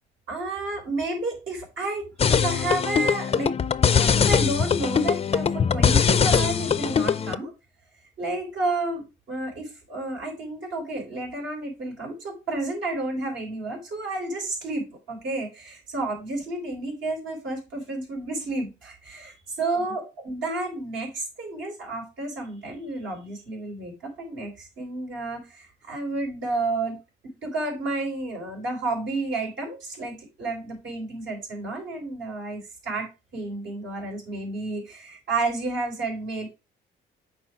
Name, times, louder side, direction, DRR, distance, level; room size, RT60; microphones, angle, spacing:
voice 1, 0.3-3.6 3.9-7.5 8.2-27.0 27.2-36.5, right 2 dB, 70° right, 0 dB, 4.5 m, -31 dB
sound 1, 2.2-7.4, left 7 dB, 30° left, 0.4 m, -22 dB
6.2 x 4.4 x 4.9 m, 0.27 s
cardioid pair, 90°, 20 cm